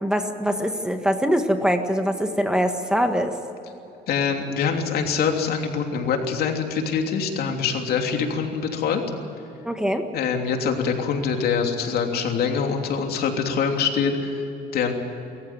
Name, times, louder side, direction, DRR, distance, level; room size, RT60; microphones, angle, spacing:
voice 1, 0.0-3.3 9.6-10.1, equal, 5° right, 6 dB, 1.6 m, -23 dB
voice 2, 4.1-9.0 10.1-14.9, left 6 dB, 65° left, 3 dB, 3.1 m, -24 dB
24.0 x 14.5 x 9.4 m, 2.9 s
cardioid pair, 110°, 17 cm